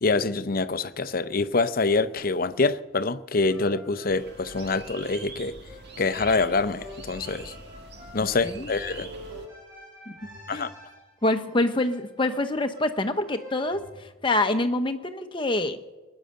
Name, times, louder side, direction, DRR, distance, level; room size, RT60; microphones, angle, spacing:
voice 1, 0.0-5.5 6.0-7.5 8.1-9.1 10.5-10.7, left 3 dB, 45° left, 0.6 m, -25 dB
sound 1, 3.4-14.0, left 1 dB, 20° right, 6.4 m, -46 dB
sound 2, 4.1-9.5, right 2 dB, 55° right, 1.7 m, -44 dB
voice 2, 11.2-15.8, left 2 dB, 25° left, 0.9 m, -26 dB
21.0 x 9.9 x 6.5 m
head